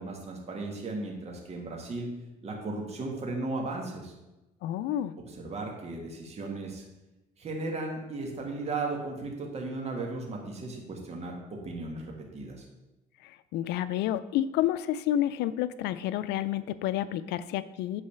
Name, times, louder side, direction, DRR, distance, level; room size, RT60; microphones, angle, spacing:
voice 1, 0.0-2.1 2.4-4.1 5.2-6.8 7.4-12.6, right 3 dB, 40° right, 0 dB, 1.6 m, -36 dB
voice 2, 4.6-5.1 13.2-18.0, left 12 dB, 85° left, 15 dB, 0.4 m, -30 dB
8.7 x 4.1 x 6.7 m, 1.0 s
cardioid pair, 110°, 17 cm